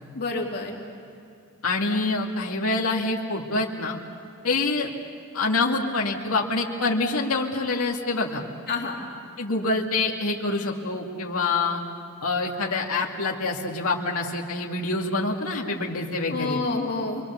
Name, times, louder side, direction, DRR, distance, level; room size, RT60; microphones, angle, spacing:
voice 1, 0.1-0.8 8.7-9.0 16.3-17.2, left 3 dB, 50° left, -1 dB, 3.1 m, -28 dB
voice 2, 1.6-4.0 4.4-4.9 5.3-8.4 9.4-11.8 12.2-16.6, left 3 dB, 75° left, -1 dB, 2.3 m, -26 dB
28.0 x 23.0 x 7.1 m, 2.5 s
head